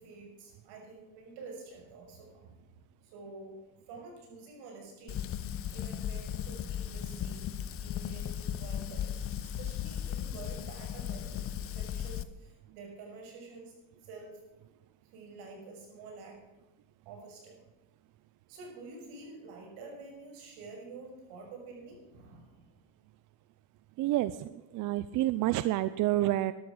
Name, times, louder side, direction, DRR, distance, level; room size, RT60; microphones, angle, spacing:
voice 1, 0.0-3.6 3.9-5.2 5.7-13.7 14.0-14.7 15.0-16.4 17.0-17.6 18.5-22.7, right 3 dB, 75° right, 1 dB, 6.5 m, -49 dB
Fire, 5.1-12.2, left 9 dB, 35° left, 0.7 m, -36 dB
voice 2, 24.0-26.5, right 15 dB, 50° right, 14 dB, 0.6 m, -29 dB
12.5 x 12.5 x 6.3 m, 1.0 s
cardioid pair, 130°, 41 cm